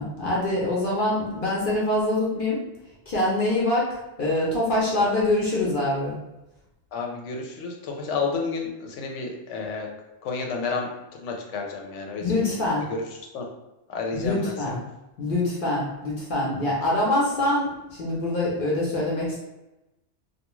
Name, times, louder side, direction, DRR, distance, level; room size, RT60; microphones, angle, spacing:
voice 1, 0.0-2.6 3.1-6.1 12.2-12.8 14.1-14.8 15.2-19.4, left 1 dB, 55° left, -5 dB, 0.8 m, -24 dB
voice 2, 6.9-9.9 10.2-12.4 12.8-13.0 13.3-13.5 13.9-14.8, left 4 dB, 85° left, 1 dB, 0.9 m, -31 dB
2.3 x 2.3 x 3.0 m, 0.98 s
omnidirectional pair, 1.2 m